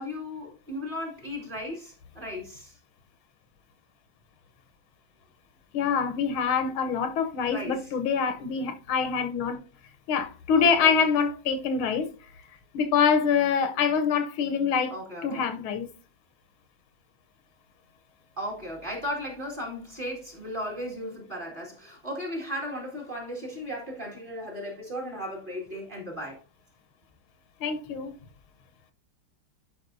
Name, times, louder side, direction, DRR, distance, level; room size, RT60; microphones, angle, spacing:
voice 1, 0.0-2.7 7.5-7.9 10.6-10.9 14.9-15.5 18.4-26.4, equal, 25° right, 2.1 m, -36 dB
voice 2, 5.7-9.6 10.1-12.1 12.7-14.9 15.2-15.9 27.6-28.1, left 6 dB, 80° left, 1.7 m, -25 dB
11.5 x 5.2 x 2.6 m
omnidirectional pair, 2.3 m